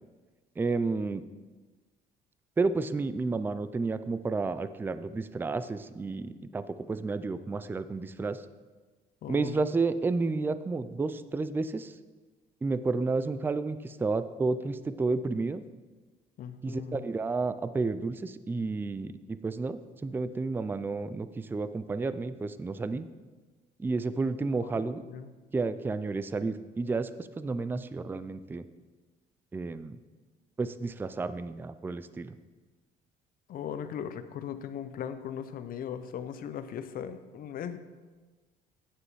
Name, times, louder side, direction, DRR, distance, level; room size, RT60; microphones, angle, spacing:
voice 1, 0.6-1.2 2.6-8.4 9.3-11.9 12.6-15.6 16.6-23.1 23.8-25.0 25.5-28.6 29.5-30.0 30.6-32.3, right 3 dB, 10° right, 13 dB, 0.3 m, -31 dB
voice 2, 9.2-9.7 16.4-17.0 24.6-25.3 33.5-37.8, left 8 dB, 60° left, 10 dB, 0.7 m, -38 dB
9.5 x 6.5 x 4.7 m, 1.3 s
cardioid pair, 110°, 17 cm